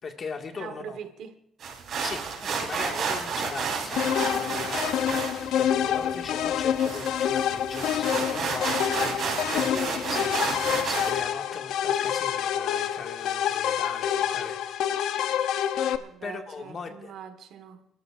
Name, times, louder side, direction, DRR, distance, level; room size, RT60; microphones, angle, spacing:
voice 1, 0.0-1.0 2.0-5.0 5.4-8.8 9.5-14.8 16.2-17.1, left 5 dB, 50° left, 1.9 m, -39 dB
voice 2, 0.5-1.4 16.0-17.9, right 7 dB, 80° right, 1.4 m, -42 dB
sound 1, 1.6-11.2, right 5 dB, 65° right, 3.9 m, -32 dB
sound 2, 4.0-16.0, left 9 dB, 85° left, 0.7 m, -27 dB
29.0 x 13.5 x 2.5 m
cardioid pair, 90°, 0 cm